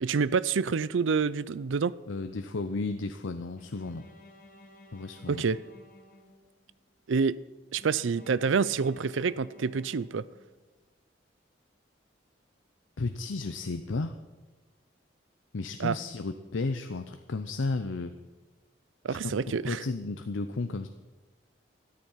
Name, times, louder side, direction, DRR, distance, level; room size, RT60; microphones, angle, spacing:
voice 1, 0.0-1.9 5.3-5.6 7.1-7.4 7.7-10.2 15.8-16.0 19.0-19.8, right 5 dB, 85° right, 0.5 m, -27 dB
voice 2, 2.1-4.1 4.9-5.4 13.0-14.2 15.5-18.1 19.1-20.9, left 3 dB, 90° left, 0.7 m, -33 dB
Bowed string instrument, 3.6-6.8 7.8-10.7, left 1 dB, 45° left, 1.8 m, -54 dB
13.5 x 12.5 x 5.7 m
head